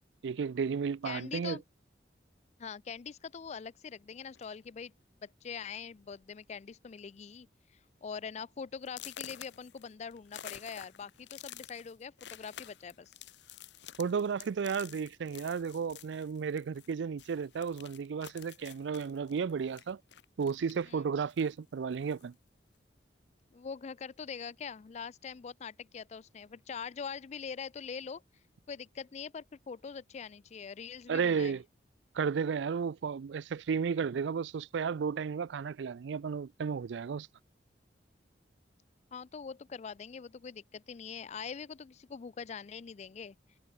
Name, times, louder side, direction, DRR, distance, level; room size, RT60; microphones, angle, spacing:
voice 1, 0.2-1.6 14.0-20.0 20.4-22.3 31.1-31.6 32.1-37.3, right 6 dB, 85° right, 0.4 m, -33 dB
voice 2, 1.0-1.6 2.6-4.9 5.2-7.5 8.0-13.1 20.9-21.0 23.5-28.2 28.7-31.6 39.1-43.4, left 6 dB, 40° left, 0.4 m, -43 dB
sound 1, 4.3-4.7 5.5-5.6 6.0-6.2 6.5-7.0 7.4-7.5 8.0-8.1 8.9-16.9 17.2-20.9 21.3-22.3, left 11 dB, 75° left, 0.8 m, -50 dB
head